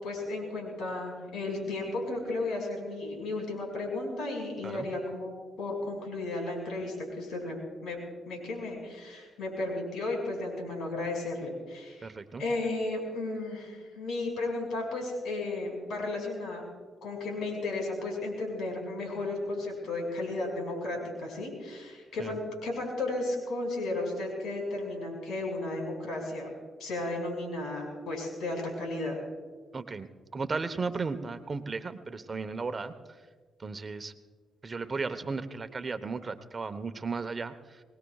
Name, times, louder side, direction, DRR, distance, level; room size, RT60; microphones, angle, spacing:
voice 1, 0.0-7.6 7.8-8.0 8.3-12.1 12.4-16.6 17.0-26.5 26.8-29.2, left 2 dB, 80° left, 1 dB, 5.5 m, -34 dB
voice 2, 12.0-12.4 22.2-22.4 29.7-30.1 30.3-33.2 33.6-34.1 34.6-37.8, right 4 dB, 40° right, 10 dB, 1.0 m, -35 dB
23.5 x 20.0 x 2.4 m, 1.5 s
cardioid pair, 70°, 0 cm